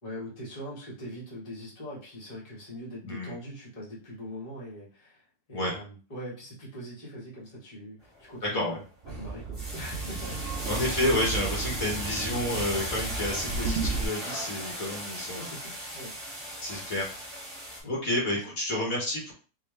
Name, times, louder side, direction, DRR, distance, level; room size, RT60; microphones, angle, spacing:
voice 1, 0.0-5.2 5.5-10.6 15.3-16.3 17.8-17.9 18.3-18.4, equal, 25° left, -6 dB, 1.4 m, -42 dB
voice 2, 3.0-3.3 5.5-5.7 8.4-8.8 10.6-15.5 16.6-17.1 17.8-19.3, left 1 dB, 65° left, -3 dB, 1.5 m, -30 dB
sound 1, 8.0-8.4 8.8-17.8, equal, 20° right, 1.5 m, -37 dB
sound 2, 9.0-14.0, right 4 dB, 65° right, 0.6 m, -34 dB
3.5 x 3.0 x 3.1 m, 0.36 s
omnidirectional pair, 1.7 m